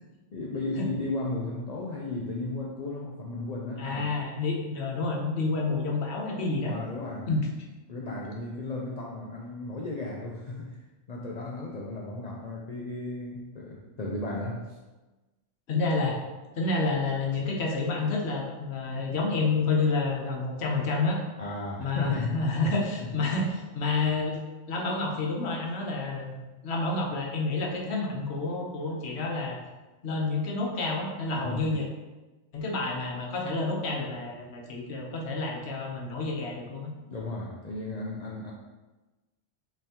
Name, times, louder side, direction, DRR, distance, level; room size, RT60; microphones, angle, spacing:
voice 1, 0.3-4.1 6.7-7.3 7.9-10.8 11.1-14.8 21.4-22.7 23.0-23.1 31.4-31.7 37.0-38.5, left 2 dB, 75° left, -2 dB, 0.3 m, -35 dB
voice 2, 3.8-6.8 7.3-7.5 15.7-16.2 16.5-21.2 21.8-24.4 24.7-29.6 30.0-31.9 32.5-36.9, left 3 dB, 60° left, 0 dB, 1.0 m, -29 dB
5.4 x 3.2 x 2.8 m, 1.2 s
omnidirectional pair, 1.4 m